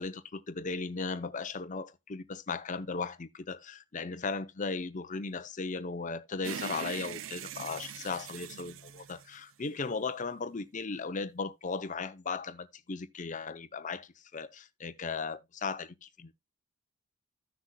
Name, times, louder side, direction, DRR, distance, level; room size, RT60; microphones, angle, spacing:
voice 1, 0.0-16.3, left 4 dB, 40° left, 0.7 m, -37 dB
sound 1, 6.4-9.9, right 8 dB, 80° right, 0.5 m, -42 dB
15.0 x 6.1 x 2.3 m
head